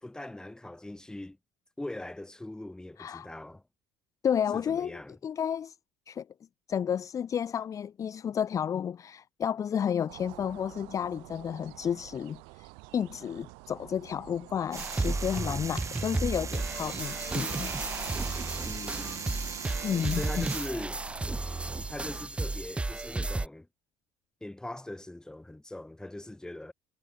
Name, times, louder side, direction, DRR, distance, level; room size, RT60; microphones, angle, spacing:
voice 1, 0.0-1.4 1.8-3.6 4.5-5.2 18.6-19.3 20.1-21.0 21.9-23.7 24.4-26.7, left 1 dB, 5° left, 3.8 m, -41 dB
voice 2, 4.2-5.8 6.1-6.3 6.7-17.7 19.8-20.5, left 8 dB, 35° left, 0.7 m, -31 dB
sound 1, 10.1-22.2, right 34 dB, 80° right, 4.4 m, -48 dB
sound 2, 14.7-20.7, right 6 dB, 35° right, 6.5 m, -40 dB
sound 3, 14.8-23.5, right 2 dB, 10° right, 1.5 m, -33 dB
supercardioid pair, 95°, 9 cm